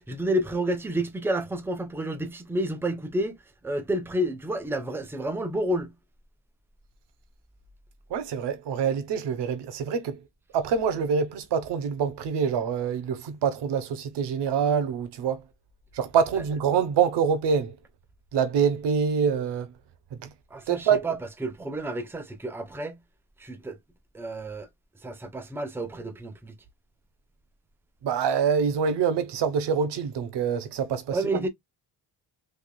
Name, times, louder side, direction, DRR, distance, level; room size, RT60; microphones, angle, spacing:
voice 1, 0.0-3.4 3.6-5.9 20.5-23.0 23.4-23.8 24.1-24.7 25.0-26.5 31.1-31.5, right 1 dB, 5° right, 0.6 m, -30 dB
voice 2, 8.1-10.2 10.5-15.4 15.9-17.7 18.3-19.7 20.1-20.3 20.7-21.1 28.0-31.2, right 7 dB, 90° right, 0.9 m, -25 dB
3.5 x 3.3 x 2.2 m
cardioid pair, 145°, 40 cm